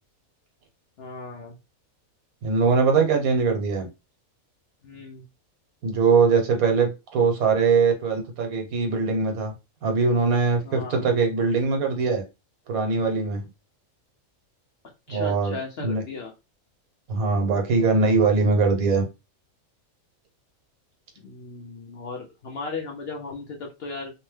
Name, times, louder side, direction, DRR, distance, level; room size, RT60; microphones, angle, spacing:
voice 1, 1.0-1.6 4.8-5.2 10.6-11.1 15.1-16.3 21.2-24.1, left 4 dB, 60° left, 0.7 m, -36 dB
voice 2, 2.4-3.9 5.8-9.5 9.8-12.2 12.7-13.4 15.1-16.0 17.1-19.1, right 4 dB, 80° right, 1.3 m, -22 dB
2.9 x 2.1 x 3.1 m
omnidirectional pair, 1.5 m